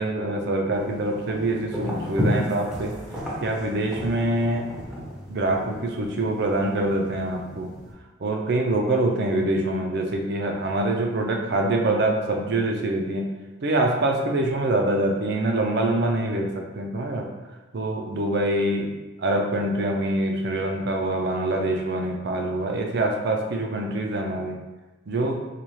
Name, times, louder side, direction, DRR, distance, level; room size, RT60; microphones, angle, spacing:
voice 1, 0.0-3.0 3.4-4.8 5.3-7.7 8.2-13.3 13.6-17.3 17.7-24.6 25.1-25.5, right 1 dB, 55° right, 2 dB, 0.5 m, -25 dB
sound 1, 0.7-7.9, left 1 dB, 5° right, 0.6 m, -33 dB
4.0 x 2.3 x 3.1 m, 1.1 s
head